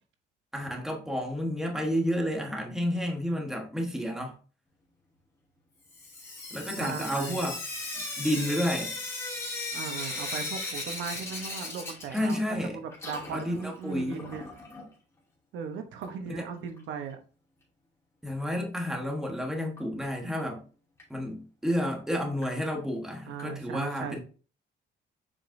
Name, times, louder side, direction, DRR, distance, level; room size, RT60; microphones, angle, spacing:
voice 1, 0.5-4.4 6.5-7.6 8.2-8.9 12.1-12.8 13.3-14.2 16.4-16.5 18.2-20.6 21.1-24.2, equal, ahead, 1.3 m, -31 dB
Sink (filling or washing) / Drip, 5.9-12.6 12.9-14.8 16.0-16.1 16.4-16.5 16.8-16.9 19.8-19.9 20.4-20.5 21.0-21.1 21.7-21.8 22.4-22.5 23.4-23.5, left 2 dB, 15° left, 2.7 m, -37 dB
voice 2, 6.8-7.5 9.7-14.4 15.5-17.2 23.3-24.2, right 6 dB, 75° right, 1.0 m, -38 dB
7.4 x 5.0 x 2.7 m
cardioid pair, 160°, 20 cm